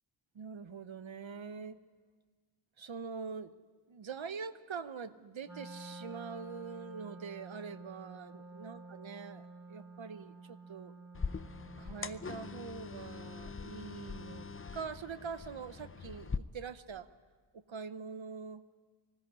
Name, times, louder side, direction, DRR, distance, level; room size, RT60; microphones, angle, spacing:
voice 1, 0.3-1.8 2.8-3.5 3.9-10.9 11.8-14.5 14.7-17.1 17.5-18.6, right 5 dB, 70° right, 12 dB, 0.9 m, -44 dB
Wind instrument woodwind instrument, 5.4-12.6, right 3 dB, 5° right, 2.3 m, -50 dB
sound 1, 11.1-16.4, left 5 dB, 25° left, 0.6 m, -42 dB
19.5 x 16.5 x 9.8 m, 1.5 s
wide cardioid pair, 70°, 48 cm